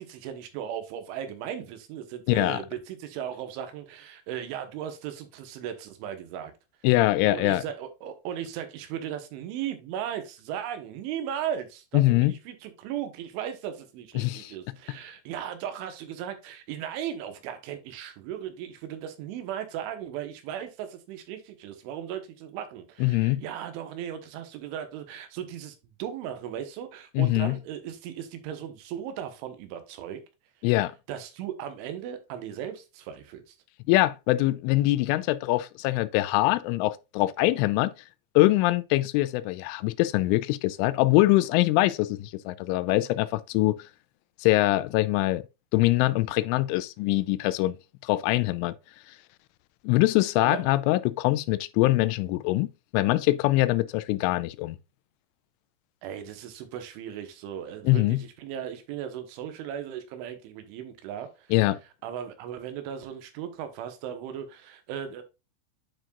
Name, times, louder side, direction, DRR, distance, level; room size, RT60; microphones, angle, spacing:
voice 1, 0.0-6.5 7.3-30.2 31.1-33.6 50.4-50.6 56.0-61.5 62.0-65.2, right 9 dB, 90° right, 3.5 m, -37 dB
voice 2, 2.3-2.6 6.8-7.6 11.9-12.3 14.2-14.5 23.0-23.4 27.2-27.6 30.6-30.9 33.9-37.9 38.4-43.8 44.4-45.4 45.7-47.8 48.0-48.7 49.8-52.7 52.9-54.8 57.9-58.2 61.5-61.8, left 18 dB, 90° left, 3.1 m, -23 dB
10.0 x 4.6 x 2.4 m
omnidirectional pair, 5.5 m